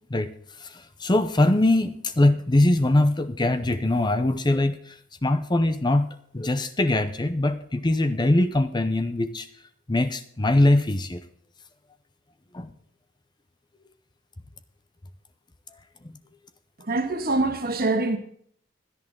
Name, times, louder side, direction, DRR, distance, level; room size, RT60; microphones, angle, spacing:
voice 1, 0.1-6.1 6.3-9.5 9.9-11.2 12.5-12.7 15.7-15.8, left 1 dB, 20° left, 0.7 m, -22 dB
voice 2, 16.8-18.2, right 2 dB, 50° right, 1.7 m, -24 dB
16.5 x 11.0 x 3.8 m
head